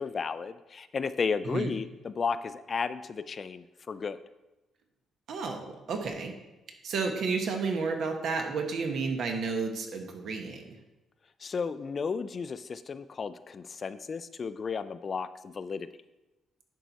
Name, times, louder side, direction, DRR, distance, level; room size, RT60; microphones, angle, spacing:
voice 1, 0.0-4.2 11.4-15.9, left 5 dB, 40° left, 13 dB, 0.3 m, -33 dB
voice 2, 5.3-6.3 6.8-10.6, right 4 dB, 65° right, 4 dB, 1.1 m, -31 dB
10.5 x 4.6 x 4.0 m, 1.0 s
cardioid pair, 90°, 0 cm